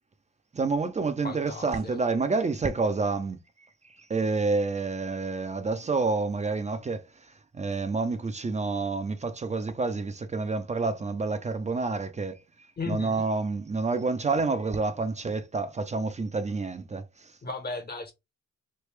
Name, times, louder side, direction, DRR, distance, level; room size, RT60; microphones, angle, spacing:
voice 1, 0.5-3.4 4.1-7.1 7.5-17.3, right 3 dB, 25° right, 0.5 m, -28 dB
voice 2, 1.2-2.0 12.8-13.3 17.4-18.1, left 3 dB, 30° left, 0.9 m, -36 dB
3.3 x 2.6 x 3.2 m
cardioid pair, 90°, 30 cm